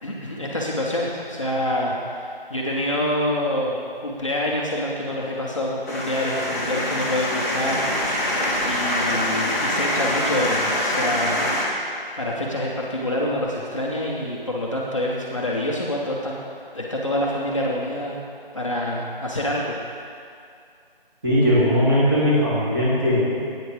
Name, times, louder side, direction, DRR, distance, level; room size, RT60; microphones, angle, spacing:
voice 1, 0.0-11.4 12.2-16.4 16.7-18.2 18.5-19.8, left 1 dB, 30° left, -4 dB, 1.0 m, -26 dB
sound 1, 5.9-11.7, left 1 dB, 15° left, 1.3 m, -24 dB
voice 2, 21.2-23.5, equal, 25° right, -10 dB, 2.9 m, -19 dB
17.5 x 9.3 x 3.4 m, 2.3 s
figure-of-eight pair, 170°, 29 cm